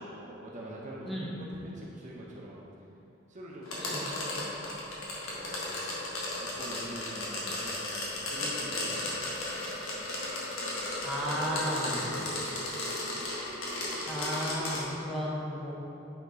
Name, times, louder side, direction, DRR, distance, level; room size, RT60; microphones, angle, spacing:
voice 1, 0.1-2.6 3.3-4.6 5.3-5.8 6.3-8.0 8.3-9.2 11.0-12.3, equal, 35° right, -4 dB, 0.8 m, -44 dB
sound 1, 3.7-14.8, left 2 dB, 85° left, 1.5 m, -35 dB
voice 2, 11.0-12.0 14.1-15.7, equal, ahead, -7 dB, 0.9 m, -34 dB
9.4 x 4.4 x 4.0 m, 2.8 s
head